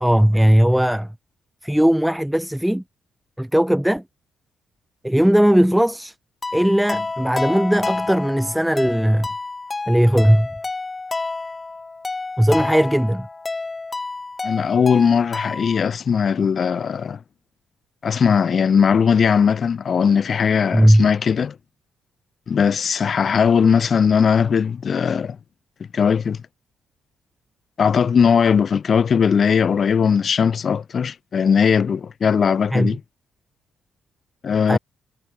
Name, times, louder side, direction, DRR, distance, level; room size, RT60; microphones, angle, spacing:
voice 1, 0.0-1.1 1.6-2.8 3.4-4.0 5.0-6.2 6.5-9.3 9.9-10.5 12.4-13.3 20.7-21.1 32.7-32.9 34.7-34.8, equal, 5° right, 1.0 m, -17 dB
sound 1, 6.4-15.8, left 3 dB, 25° left, 2.7 m, -29 dB
voice 2, 14.4-17.2 18.0-21.6 22.5-25.4 25.9-26.4 27.8-33.0 34.4-34.8, left 6 dB, 50° left, 0.8 m, -19 dB
cardioid pair, 90°, 0 cm